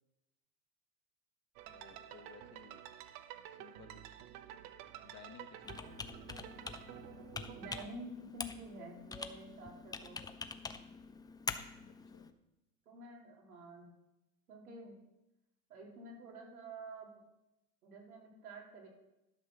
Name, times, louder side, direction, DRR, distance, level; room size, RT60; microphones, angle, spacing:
voice 1, 1.6-2.8 3.5-4.0 5.0-6.1 11.8-12.3, left 7 dB, 40° left, 6 dB, 1.5 m, -58 dB
sound 1, 1.6-7.8, right 11 dB, 50° right, 0.9 m, -51 dB
Computer keyboard, 5.6-12.3, left 4 dB, 10° left, 0.5 m, -45 dB
voice 2, 7.6-10.2 12.8-13.9 14.5-14.9 15.7-17.2 17.8-18.9, right 1 dB, 85° right, -1 dB, 3.5 m, -49 dB
11.5 x 6.3 x 6.1 m, 0.92 s
hypercardioid pair, 105°, 43 cm